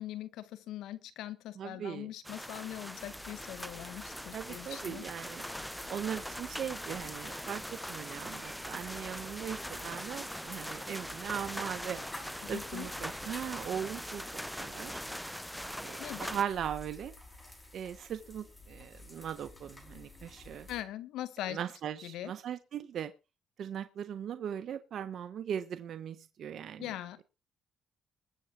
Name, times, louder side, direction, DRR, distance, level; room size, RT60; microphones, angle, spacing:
voice 1, 0.0-5.0 12.4-12.9 16.0-16.3 20.7-21.6 22.0-22.3 26.8-27.2, left 13 dB, 90° left, 1.5 m, -41 dB
voice 2, 1.6-2.1 4.3-5.4 5.9-14.2 14.6-15.0 15.8-17.1 17.7-20.7 21.5-23.1 23.6-26.9, right 9 dB, 65° right, 1.2 m, -39 dB
sound 1, 2.2-16.4, equal, ahead, 0.7 m, -41 dB
sound 2, 3.0-20.8, left 2 dB, 20° left, 5.7 m, -52 dB
21.5 x 7.2 x 4.5 m
cardioid pair, 90°, 0 cm